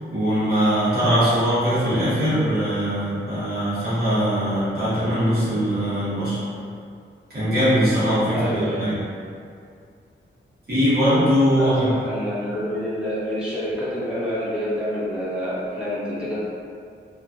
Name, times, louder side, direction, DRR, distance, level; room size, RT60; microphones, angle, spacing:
voice 1, 0.1-6.4 7.3-9.0 10.7-11.8, equal, 55° right, -13 dB, 1.4 m, -21 dB
voice 2, 8.3-8.9 11.6-16.4, equal, 5° right, -11 dB, 0.8 m, -27 dB
3.0 x 2.4 x 2.5 m, 2.3 s
wide cardioid pair, 170°, 20 cm